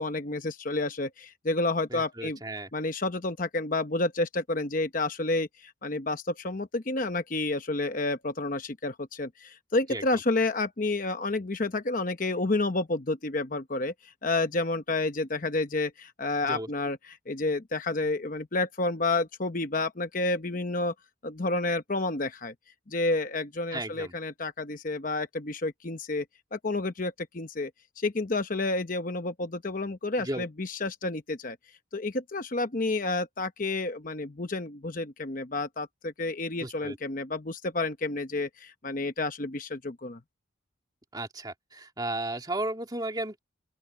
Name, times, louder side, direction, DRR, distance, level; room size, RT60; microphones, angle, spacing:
voice 1, 0.0-2.4 2.7-17.0 17.3-20.9 21.2-22.5 22.9-26.2 26.5-27.7 28.0-31.6 31.9-40.2, left 2 dB, 40° left, 0.9 m, -30 dB
voice 2, 1.9-2.7 9.9-10.2 16.5-16.7 23.7-24.1 30.2-30.4 36.6-37.0 41.1-43.4, right 1 dB, 20° right, 2.6 m, -34 dB
open air
head